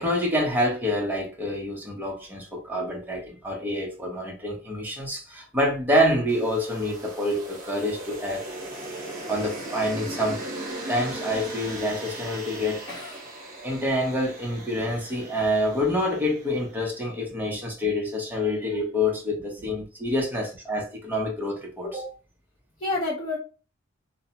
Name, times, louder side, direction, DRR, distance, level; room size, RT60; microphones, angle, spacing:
voice 1, 0.0-8.4 9.0-10.4 10.9-12.8 13.6-22.1, left 1 dB, 10° right, 0.7 m, -27 dB
sound 1, 6.3-16.6, right 1 dB, 45° right, 0.9 m, -38 dB
voice 2, 12.9-13.2 19.6-19.7 22.8-23.4, left 2 dB, 20° left, 1.0 m, -29 dB
2.7 x 2.1 x 2.7 m
head